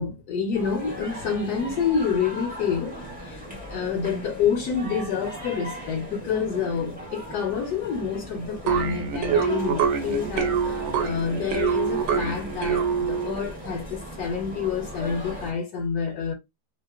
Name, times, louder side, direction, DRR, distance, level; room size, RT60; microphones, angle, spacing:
voice 1, 0.0-16.3, left 6 dB, 75° left, 1.1 m, -28 dB
sound 1, 0.5-15.5, equal, 10° right, 0.6 m, -38 dB
sound 2, 8.7-13.5, right 6 dB, 70° right, 1.0 m, -25 dB
2.8 x 2.1 x 2.3 m
omnidirectional pair, 1.8 m